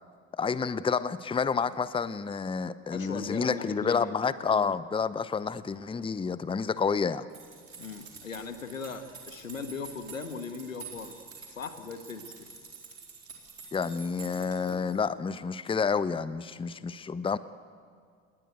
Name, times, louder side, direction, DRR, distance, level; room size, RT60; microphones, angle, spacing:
voice 1, 0.4-7.3 13.7-17.4, left 5 dB, 15° left, 16 dB, 0.8 m, -29 dB
voice 2, 2.9-4.1 7.8-11.2 11.6-12.5, left 5 dB, 85° left, 9 dB, 1.6 m, -38 dB
sound 1, 7.3-15.1, right 5 dB, 85° right, 4.2 m, -48 dB
29.0 x 20.5 x 8.1 m, 2.2 s
figure-of-eight pair, 65°, 39 cm